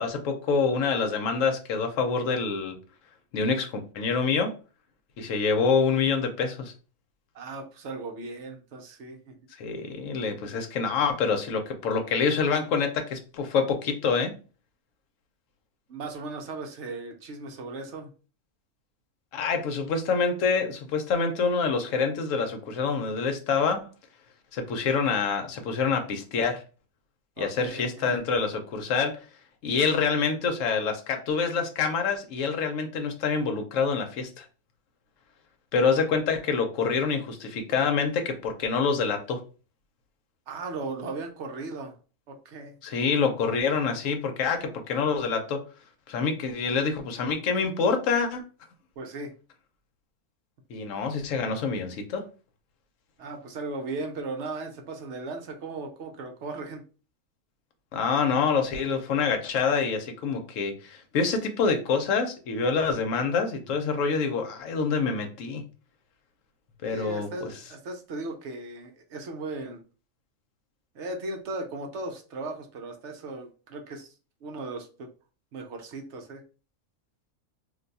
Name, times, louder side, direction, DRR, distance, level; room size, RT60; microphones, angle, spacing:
voice 1, 0.0-2.8 3.3-4.5 5.2-6.7 9.6-14.3 19.3-23.8 24.5-26.6 27.4-29.2 29.6-34.4 35.7-39.4 42.8-45.6 46.1-48.4 50.7-52.3 57.9-65.6 66.8-67.5, left 5 dB, 65° left, 1.0 m, -26 dB
voice 2, 7.3-9.4 15.9-18.1 27.4-28.2 40.5-42.0 42.3-42.7 49.0-49.3 53.2-56.8 66.8-69.8 70.9-74.1 74.4-75.1 75.5-76.4, right 3 dB, 65° right, 0.8 m, -37 dB
2.6 x 2.2 x 3.9 m
omnidirectional pair, 1.5 m